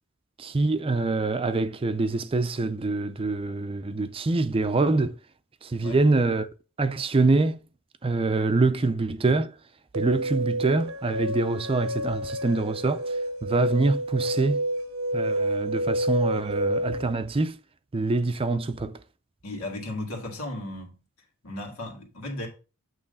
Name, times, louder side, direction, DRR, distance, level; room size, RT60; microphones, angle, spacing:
voice 1, 0.4-5.1 5.6-6.5 6.8-7.6 8.0-9.5 9.9-14.6 15.1-17.6 17.9-18.9, right 3 dB, 25° right, 0.5 m, -25 dB
sound 1, 9.9-17.1, right 1 dB, 75° right, 0.7 m, -29 dB
voice 2, 19.4-21.0 21.4-22.5, left 1 dB, 85° left, 2.2 m, -35 dB
8.6 x 3.2 x 5.4 m
head